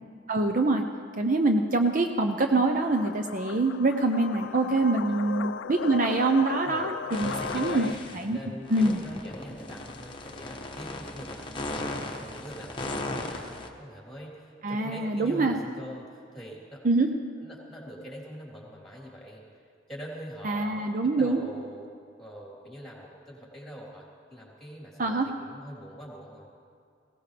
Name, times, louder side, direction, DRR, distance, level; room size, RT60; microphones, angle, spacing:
voice 1, 0.3-0.8 1.2-7.9 8.1-8.4 8.7-9.0 14.6-15.5 16.8-17.1 20.4-21.4 25.0-25.3, right 2 dB, 45° right, 5 dB, 0.6 m, -25 dB
sound 1, 2.7-7.9, left 6 dB, 80° left, 0.4 m, -36 dB
sound 2, 7.1-8.3 8.6-13.7, left 2 dB, 25° left, 1.0 m, -37 dB
voice 2, 7.2-8.0 8.3-16.8 17.4-19.4 19.9-21.9 22.2-26.5, equal, ahead, -4 dB, 3.3 m, -43 dB
19.5 x 17.5 x 3.3 m, 2.3 s
head